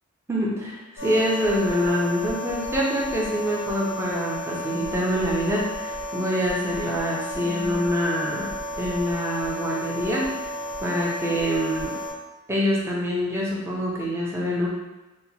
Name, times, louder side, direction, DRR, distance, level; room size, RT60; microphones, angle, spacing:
voice 1, 0.3-8.5 8.8-10.3 10.8-11.9 12.5-14.7, equal, 10° right, -4 dB, 0.4 m, -25 dB
sound 1, 1.0-12.1, left 1 dB, 60° left, 0.4 m, -33 dB
2.9 x 2.1 x 2.7 m, 1.1 s
head